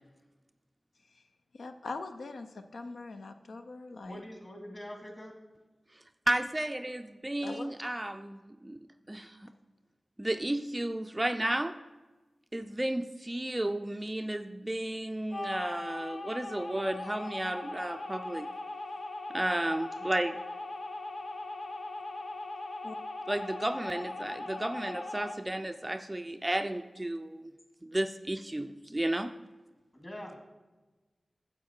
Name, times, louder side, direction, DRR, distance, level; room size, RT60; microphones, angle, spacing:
voice 1, 1.5-4.2 7.4-7.7 22.8-23.0, left 3 dB, 85° left, 7 dB, 0.5 m, -42 dB
voice 2, 4.0-5.4 29.9-30.4, left 1 dB, 30° left, 2 dB, 2.1 m, -44 dB
voice 3, 5.9-9.5 10.2-11.8 12.5-18.5 19.3-20.4 23.3-27.5 27.8-29.3, right 1 dB, 15° right, 8 dB, 0.3 m, -33 dB
sound 1, 15.3-25.4, left 2 dB, 60° left, 0.8 m, -40 dB
9.4 x 7.4 x 4.4 m, 1.2 s
wide cardioid pair, 80°, 0 cm